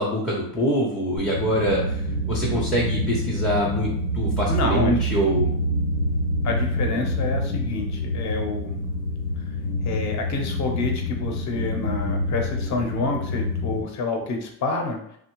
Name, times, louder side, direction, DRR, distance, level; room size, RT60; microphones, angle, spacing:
voice 1, 0.0-2.0 2.3-5.5, equal, ahead, -5 dB, 0.3 m, -24 dB
sound 1, 1.2-13.8, equal, 85° left, 0.9 m, -27 dB
voice 2, 4.5-5.0 6.4-8.8 9.8-15.0, left 3 dB, 35° left, 3 dB, 0.6 m, -28 dB
3.4 x 2.1 x 2.9 m, 0.69 s
cardioid pair, 135°, 47 cm